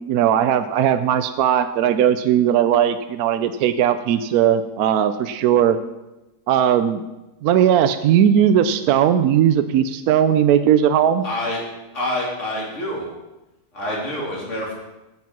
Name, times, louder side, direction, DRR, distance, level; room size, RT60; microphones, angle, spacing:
voice 1, 0.1-5.8 6.5-7.0 7.4-11.2, right 9 dB, 70° right, 10 dB, 1.0 m, -18 dB
voice 2, 11.2-11.6 11.9-13.0 13.7-14.7, left 1 dB, 45° left, -4 dB, 3.5 m, -26 dB
15.0 x 5.5 x 6.0 m, 1.0 s
omnidirectional pair, 1.7 m